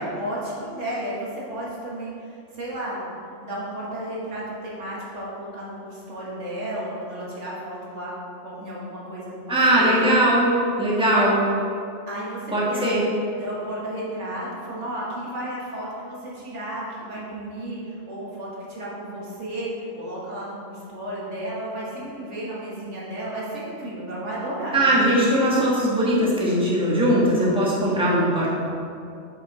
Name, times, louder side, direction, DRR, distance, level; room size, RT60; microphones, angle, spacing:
voice 1, 0.0-3.1 3.4-8.1 8.4-10.0 11.1-11.3 12.1-12.8 13.4-24.9, right 1 dB, 80° right, -6 dB, 1.7 m, -33 dB
voice 2, 9.5-11.4 12.5-13.0 24.7-28.5, right 1 dB, 5° right, -7 dB, 1.3 m, -20 dB
6.0 x 5.6 x 4.1 m, 2.5 s
omnidirectional pair, 1.2 m